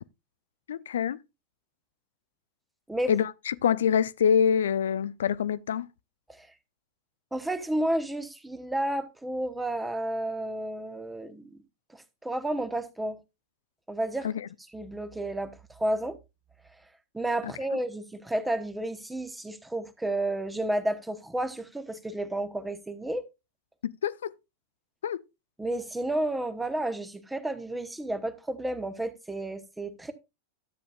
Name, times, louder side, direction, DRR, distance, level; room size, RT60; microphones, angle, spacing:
voice 1, 0.7-1.2 3.1-5.9 14.2-14.5 17.4-17.5 23.8-24.3 25.0-25.2, left 8 dB, 65° left, 0.4 m, -26 dB
voice 2, 7.3-11.6 11.9-13.2 13.9-14.3 14.7-16.2 17.1-23.3 25.6-30.1, right 1 dB, 5° right, 1.1 m, -31 dB
12.5 x 8.5 x 2.4 m
figure-of-eight pair, 90°, 0 cm